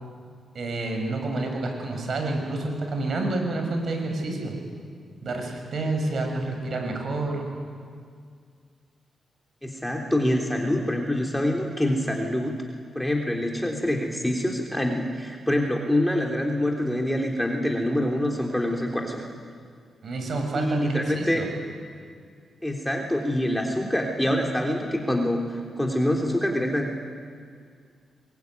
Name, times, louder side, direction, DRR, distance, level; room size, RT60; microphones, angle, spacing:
voice 1, 0.5-4.5 5.2-7.4 20.0-21.4, right 2 dB, 65° right, 3 dB, 6.7 m, -28 dB
voice 2, 9.6-12.6 12.9-19.3 20.5-21.4 22.6-26.9, left 1 dB, 5° left, 0 dB, 3.5 m, -25 dB
22.5 x 22.0 x 9.6 m, 2.1 s
cardioid pair, 65°, 0 cm